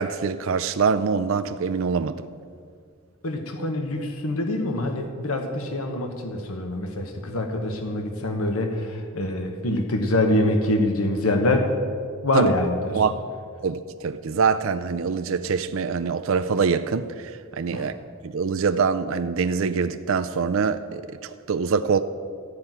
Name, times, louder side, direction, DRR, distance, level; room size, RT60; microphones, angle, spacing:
voice 1, 0.0-2.3 12.3-12.5 12.9-13.1 13.6-17.9 18.2-22.0, right 5 dB, 65° right, 9 dB, 0.4 m, -24 dB
voice 2, 3.2-11.7 12.2-13.0 17.7-17.9, left 1 dB, 80° left, 4 dB, 1.1 m, -25 dB
13.5 x 5.8 x 9.0 m, 2.2 s
head